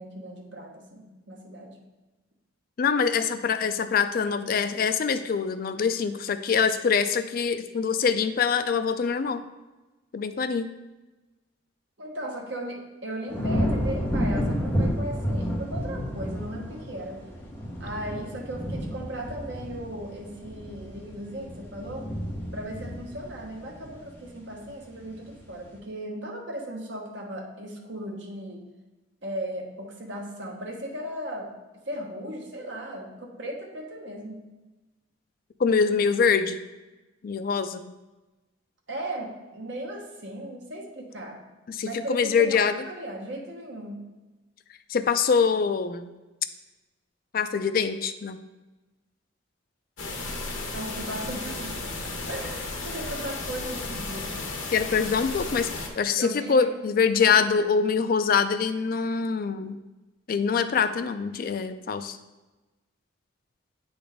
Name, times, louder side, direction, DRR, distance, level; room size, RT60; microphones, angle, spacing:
voice 1, 0.0-1.8 12.0-17.2 17.8-22.1 22.5-28.6 29.2-31.5 31.9-34.4 38.9-41.4 41.8-44.0 50.7-51.8 52.3-54.3 56.2-56.7 57.2-57.4, right 1 dB, 65° right, 0 dB, 1.1 m, -37 dB
voice 2, 2.8-9.5 10.1-10.7 35.6-36.6 37.2-37.9 41.7-42.8 44.9-46.1 47.3-48.4 54.7-59.8 60.3-62.2, left 6 dB, 45° left, 10 dB, 0.3 m, -24 dB
sound 1, 13.3-24.6 25.0-25.5, equal, 10° left, 0.9 m, -31 dB
sound 2, 50.0-55.9, left 3 dB, 85° left, 1.0 m, -34 dB
8.5 x 4.0 x 3.5 m, 1.1 s
head